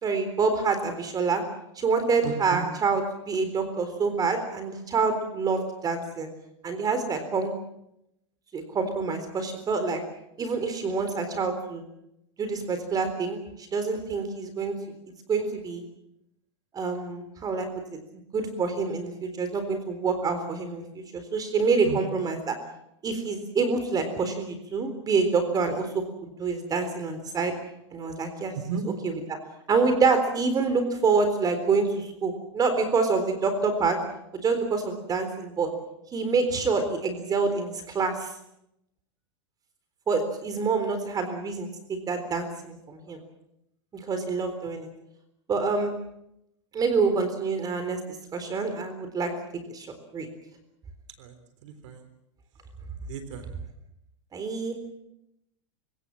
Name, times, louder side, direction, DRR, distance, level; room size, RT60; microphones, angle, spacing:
voice 1, 0.0-1.4 1.8-6.3 6.6-7.5 8.5-10.0 10.4-11.8 12.4-13.4 13.7-14.7 15.3-15.8 16.7-18.0 18.3-22.5 23.0-25.9 26.2-27.5 27.9-28.5 28.8-29.2 29.7-34.0 34.3-35.7 36.1-38.3 40.1-43.2 43.9-44.9 45.5-46.0 46.7-48.0 48.3-49.3 49.7-49.9 50.1-50.3 54.3-54.7, right 4 dB, 25° right, 8 dB, 3.9 m, -27 dB
voice 2, 2.2-2.6 21.8-22.0 28.5-28.8 51.2-51.3 51.6-52.0 53.1-53.5, right 7 dB, 70° right, 10 dB, 3.6 m, -34 dB
29.0 x 17.5 x 7.7 m, 0.82 s
hypercardioid pair, 130°, 16 cm